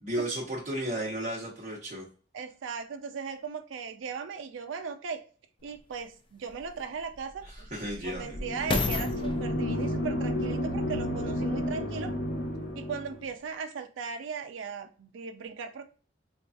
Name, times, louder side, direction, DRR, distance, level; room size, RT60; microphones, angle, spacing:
voice 1, 0.0-2.0 7.7-8.3, right 1 dB, 40° right, -5 dB, 1.0 m, -33 dB
voice 2, 2.3-5.2 5.6-7.7 8.0-12.1 12.8-15.8, right 5 dB, 85° right, 7 dB, 0.4 m, -38 dB
sound 1, 5.7-5.8 6.5-11.8 12.4-12.5, left 3 dB, 25° left, 0.4 m, -35 dB
sound 2, 8.3-13.2, equal, 60° left, 0.9 m, -31 dB
4.5 x 2.3 x 2.5 m, 0.39 s
head